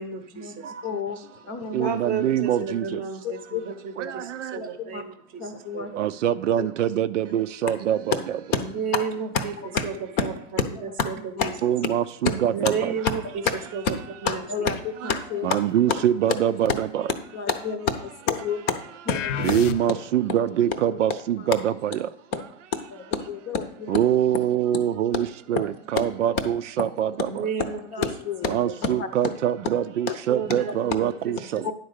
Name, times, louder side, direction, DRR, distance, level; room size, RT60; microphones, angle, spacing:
voice 1, 0.0-0.7 1.8-5.9 8.6-9.5 9.8-9.9 10.2-10.3 11.0-11.2 11.4-11.5 12.5-13.2 13.7-13.8 14.2-14.4 27.3-28.1 28.4-28.6 30.3-31.1 31.5-31.6, right 6 dB, 20° right, 0.9 m, -32 dB
voice 2, 0.8-1.9 3.2-3.6 4.5-5.0 5.4-5.9 6.6-6.7 8.5-8.6 8.9-9.0 9.3-9.8 10.2-10.3 10.6-11.6 12.2-12.3 12.6-12.8 14.2-15.6 16.7-16.8 17.3-19.9 20.9-21.0 21.4-21.5 22.3-22.4 22.7-24.0 25.1-25.2 25.5-25.7 25.9-26.0 27.9-28.5 28.8-29.1 30.1-30.2 31.6-31.7, left 6 dB, 25° left, 0.7 m, -29 dB
voice 3, 1.7-3.0 4.0-4.6 5.9-8.2 11.6-12.9 15.4-17.0 19.4-22.1 23.9-27.4 28.5-31.7, right 10 dB, 70° right, 0.6 m, -24 dB
sound 1, 19.1-20.2, left 7 dB, 70° left, 0.7 m, -30 dB
10.0 x 4.0 x 6.5 m
hypercardioid pair, 135°, 39 cm